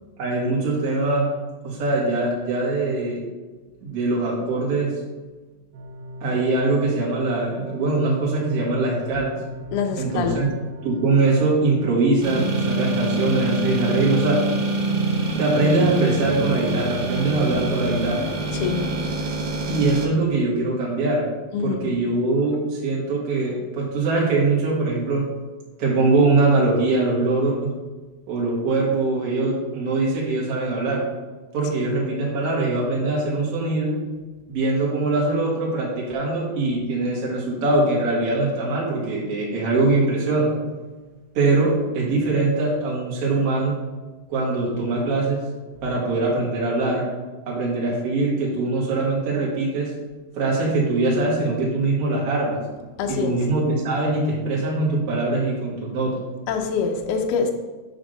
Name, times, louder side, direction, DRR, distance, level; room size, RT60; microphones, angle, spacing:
voice 1, 0.2-1.3 1.6-3.2 3.8-4.9 6.2-9.3 10.0-10.5 10.8-14.4 15.4-18.2 19.7-21.3 21.6-25.2 25.8-27.7 28.3-31.0 31.5-33.9 34.5-40.5 41.3-43.8 44.3-45.4 45.8-47.0 47.5-49.9 50.3-52.6 53.1-56.1, right 3 dB, 50° right, -5 dB, 2.2 m, -22 dB
sound 1, 5.7-12.0, left 1 dB, 85° right, 2.4 m, -38 dB
voice 2, 9.7-10.4 18.5-19.0 21.5-21.9 53.0-53.4 56.5-57.5, left 5 dB, 80° left, 3 dB, 1.8 m, -25 dB
sound 2, 12.2-20.1, right 2 dB, 65° right, 2.6 m, -25 dB
7.9 x 3.5 x 6.4 m, 1.3 s
omnidirectional pair, 4.3 m